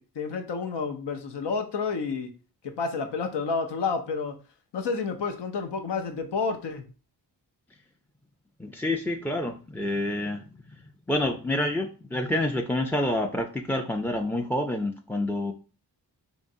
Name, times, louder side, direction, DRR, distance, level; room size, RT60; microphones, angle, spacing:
voice 1, 0.0-2.3 2.6-4.3 4.7-6.9, left 4 dB, 90° left, 6 dB, 0.7 m, -30 dB
voice 2, 8.6-10.4 10.7-10.8 11.1-15.5, left 1 dB, 5° left, 3 dB, 0.3 m, -28 dB
3.7 x 3.1 x 2.6 m, 0.36 s
cardioid pair, 50°, 41 cm